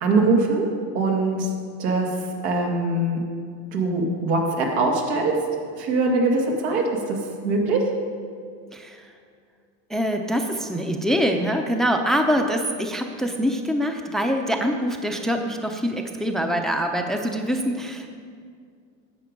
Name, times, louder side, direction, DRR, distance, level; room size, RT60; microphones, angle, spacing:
voice 1, 0.0-1.5 1.8-2.1 2.4-3.2 3.7-5.4 5.8-7.2 7.4-7.8, right 3 dB, 80° right, 1 dB, 2.1 m, -22 dB
voice 2, 8.7-9.1 9.9-18.1, equal, ahead, 4 dB, 0.6 m, -24 dB
10.5 x 7.8 x 5.2 m, 2.2 s
supercardioid pair, 130°, 34 cm